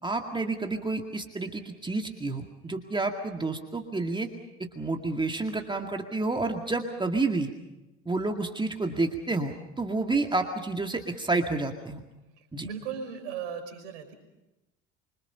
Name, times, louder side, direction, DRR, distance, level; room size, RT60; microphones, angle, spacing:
voice 1, 0.0-4.3 4.8-7.5 8.1-12.0 12.5-12.7, right 3 dB, 15° right, 4 dB, 2.1 m, -29 dB
voice 2, 12.4-14.1, right 7 dB, 65° right, 2 dB, 5.3 m, -37 dB
26.5 x 24.5 x 5.6 m, 1.0 s
figure-of-eight pair, 65°, 36 cm